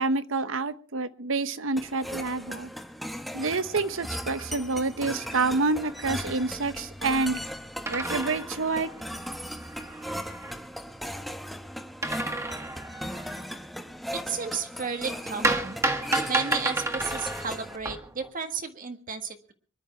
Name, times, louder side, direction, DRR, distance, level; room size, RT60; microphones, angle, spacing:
voice 1, 0.0-2.7 3.3-7.4 7.9-8.9, right 3 dB, 90° right, 13 dB, 1.0 m, -28 dB
sound 1, 1.8-17.8, equal, ahead, 1.1 m, -37 dB
sound 2, 3.8-4.7 5.1-5.2 5.4-6.5 7.9-10.5 12.0-13.6 15.4-18.3, right 2 dB, 15° right, 1.6 m, -32 dB
voice 2, 14.3-15.8 16.3-19.5, right 5 dB, 45° right, 7 dB, 1.7 m, -33 dB
24.0 x 11.5 x 4.4 m, 0.41 s
head